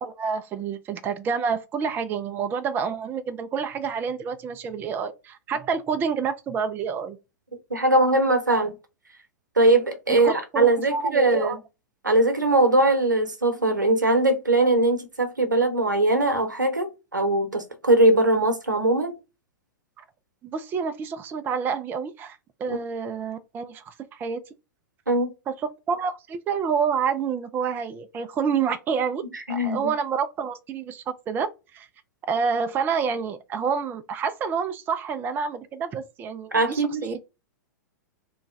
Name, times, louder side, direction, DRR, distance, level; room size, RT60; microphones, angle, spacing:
voice 1, 0.0-7.2 10.1-11.6 20.0-20.1 20.4-24.4 25.5-29.2 29.5-31.9 32.3-37.2, right 6 dB, 20° right, 0.3 m, -28 dB
voice 2, 7.7-8.7 9.6-11.6 12.0-19.1 22.7-22.8 25.1-25.3 29.5-29.9 36.5-37.2, right 2 dB, 85° right, 0.8 m, -21 dB
3.0 x 2.2 x 4.0 m
figure-of-eight pair, 100°, 10 cm